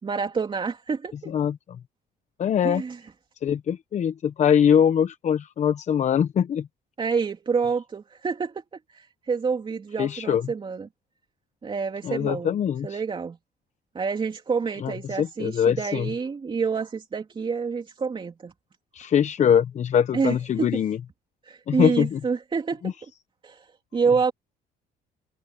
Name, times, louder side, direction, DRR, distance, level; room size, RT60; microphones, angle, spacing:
voice 1, 0.0-1.3 2.6-3.1 7.0-8.6 8.9-10.9 11.6-12.5 12.8-13.4 13.9-18.5 20.1-20.8 21.4-23.1 23.4-24.3, right 5 dB, 30° right, 3.2 m, -28 dB
voice 2, 1.3-1.6 2.4-2.8 3.4-6.7 10.0-10.5 12.0-13.0 14.8-14.9 15.2-16.1 18.9-21.0 21.7-22.2 22.8-22.9, left 8 dB, 45° left, 0.8 m, -22 dB
cardioid pair, 110°, 17 cm